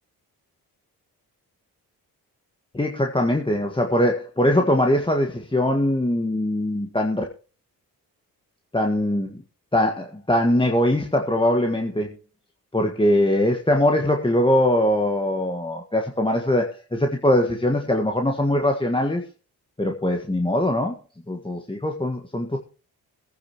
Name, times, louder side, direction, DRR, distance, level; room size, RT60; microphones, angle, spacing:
voice 1, 2.7-7.2 8.7-9.4 9.7-12.1 12.7-19.2 19.8-21.0 21.3-22.6, left 1 dB, 15° left, 2 dB, 1.6 m, -22 dB
21.5 x 9.5 x 3.0 m, 0.34 s
cardioid pair, 60°, 38 cm